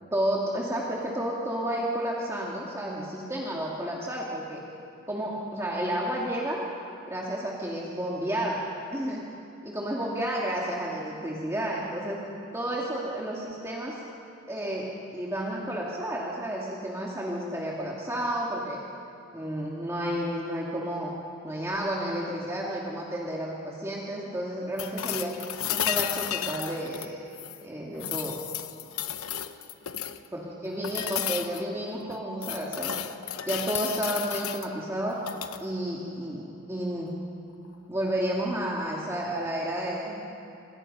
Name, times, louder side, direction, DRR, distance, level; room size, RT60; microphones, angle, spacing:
voice 1, 0.1-4.6 5.1-6.6 7.1-9.2 9.6-12.2 12.5-14.0 14.5-18.8 19.3-21.1 21.4-25.3 25.7-27.3 27.6-28.4 30.3-32.9 33.5-35.2 35.6-36.4 36.7-37.2 37.9-40.2, right 1 dB, 15° right, -4 dB, 2.3 m, -31 dB
sound 1, 24.8-27.6 28.0-30.3 30.8-31.6 32.1-34.7 35.2-35.6 37.6-37.7, left 10 dB, 80° left, 1.0 m, -33 dB
26.5 x 26.0 x 5.5 m, 2.8 s
head